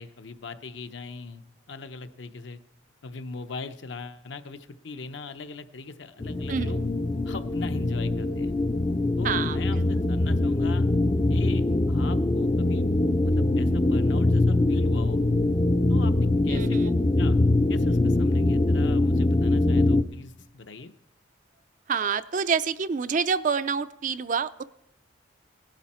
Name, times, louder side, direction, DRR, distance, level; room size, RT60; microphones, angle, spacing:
voice 1, 0.0-1.4 1.7-2.6 3.0-6.8 7.2-8.5 9.2-10.9 11.3-12.9 13.2-15.2 15.9-16.6 17.2-17.4 17.7-20.9, left 3 dB, 65° left, 9 dB, 0.7 m, -40 dB
sound 1, 6.2-20.0, left 2 dB, 25° left, 0.4 m, -23 dB
voice 2, 6.5-6.9 9.2-9.6 16.5-17.0 21.9-24.6, right 6 dB, 40° right, 13 dB, 0.4 m, -27 dB
17.5 x 11.5 x 4.3 m, 0.88 s
head